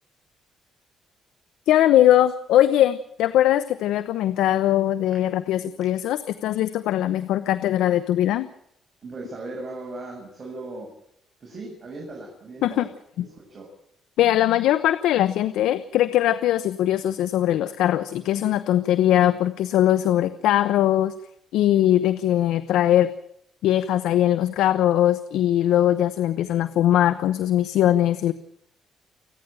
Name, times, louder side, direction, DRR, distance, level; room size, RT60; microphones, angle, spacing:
voice 1, 1.7-8.5 12.6-12.9 14.2-21.1 21.5-23.1 23.6-28.3, left 12 dB, 85° left, 13 dB, 0.9 m, -20 dB
voice 2, 9.0-10.9 11.4-12.9 13.3-13.7, right 2 dB, 40° right, -1 dB, 7.4 m, -37 dB
29.0 x 10.5 x 9.1 m, 0.74 s
cardioid pair, 90°, 0 cm